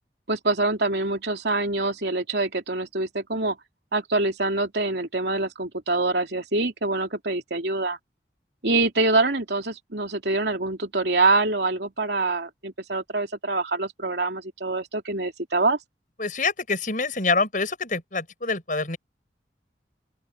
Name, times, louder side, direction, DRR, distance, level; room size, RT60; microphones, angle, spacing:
voice 1, 0.3-3.6 3.9-8.0 8.6-15.8, right 2 dB, 75° right, 3.0 m, -25 dB
voice 2, 16.2-19.0, left 3 dB, 50° left, 7.1 m, -26 dB
open air
head